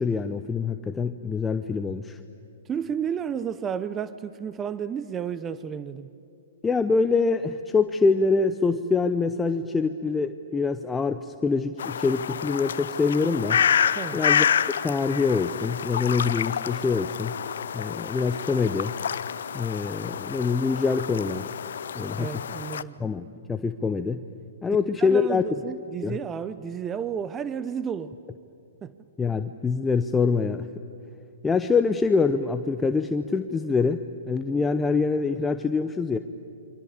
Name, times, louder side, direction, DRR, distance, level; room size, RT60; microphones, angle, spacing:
voice 1, 0.0-2.2 6.6-13.6 14.1-14.5 14.8-17.3 17.7-19.0 19.5-21.5 21.9-22.3 23.0-24.2 24.6-25.4 26.0-26.2 29.2-30.7 31.4-36.2, left 4 dB, 10° left, 9 dB, 0.8 m, -25 dB
voice 2, 2.7-6.1 14.0-14.2 22.1-22.9 25.0-28.2 28.8-28.9, right 7 dB, 20° right, 14 dB, 0.7 m, -32 dB
sound 1, 11.8-22.8, left 8 dB, 70° left, 0.7 m, -28 dB
28.0 x 24.5 x 8.8 m, 2.6 s
hypercardioid pair, 125°, 0 cm